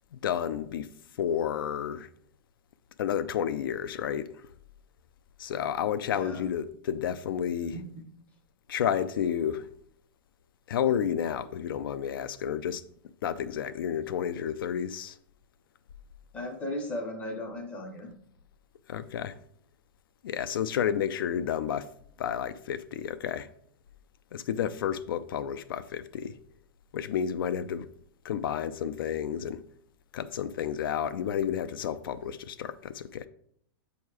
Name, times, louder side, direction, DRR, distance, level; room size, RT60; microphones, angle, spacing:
voice 1, 0.1-0.9 1.2-2.1 3.0-4.3 5.4-7.7 8.7-9.7 10.7-12.8 13.2-15.2 18.9-19.4 20.2-21.9 22.2-23.5 24.3-26.4 26.9-27.9 28.2-29.6 30.1-33.3, left 9 dB, 65° left, 0.4 m, -31 dB
voice 2, 6.1-6.5 7.7-8.0 16.3-18.1, left 1 dB, 10° left, 0.6 m, -36 dB
7.2 x 2.8 x 4.6 m
supercardioid pair, 175°, 13 cm